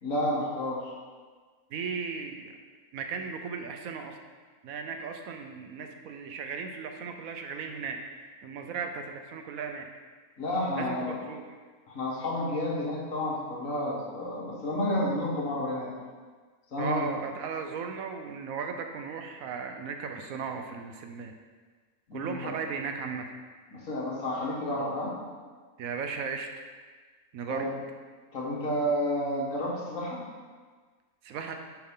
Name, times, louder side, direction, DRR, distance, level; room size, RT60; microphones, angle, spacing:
voice 1, 0.0-0.9 10.4-11.2 11.9-15.9 16.7-17.1 22.1-22.5 23.7-25.2 27.5-27.8 28.3-30.2, left 1 dB, 70° left, -4 dB, 1.8 m, -30 dB
voice 2, 1.7-2.5 2.9-4.2 4.6-8.0 8.4-9.9 10.8-11.4 16.8-21.3 22.1-23.3 25.8-26.5 27.3-27.7 31.2-31.5, right 5 dB, 80° right, 5 dB, 1.1 m, -36 dB
7.3 x 4.7 x 3.7 m, 1.5 s
omnidirectional pair, 1.5 m